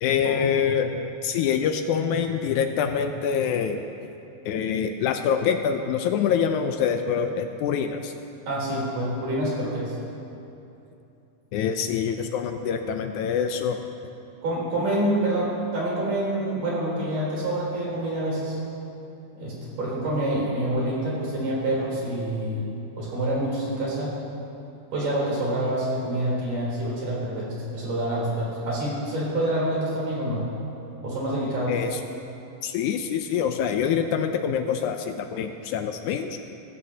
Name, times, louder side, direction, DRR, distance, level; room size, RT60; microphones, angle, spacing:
voice 1, 0.0-3.8 4.5-8.1 11.5-13.8 31.7-32.0 32.6-36.4, left 7 dB, 80° left, 6 dB, 1.7 m, -25 dB
voice 2, 8.5-9.9 14.4-18.6 19.4-22.6 23.0-24.1 24.9-30.5 31.0-31.7, right 1 dB, 65° right, -6 dB, 5.2 m, -27 dB
22.0 x 12.5 x 2.8 m, 2.8 s
omnidirectional pair, 4.0 m